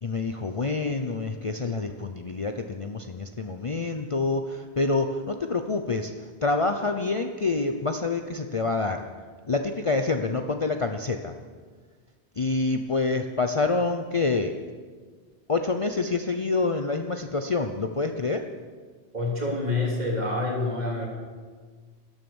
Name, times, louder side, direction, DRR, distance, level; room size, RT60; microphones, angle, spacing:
voice 1, 0.0-9.0 9.5-11.3 12.4-14.5 15.5-18.4, left 3 dB, 35° left, 6 dB, 0.7 m, -27 dB
voice 2, 19.1-21.1, left 2 dB, 40° right, -2 dB, 3.4 m, -27 dB
13.0 x 12.5 x 7.1 m, 1.5 s
omnidirectional pair, 1.1 m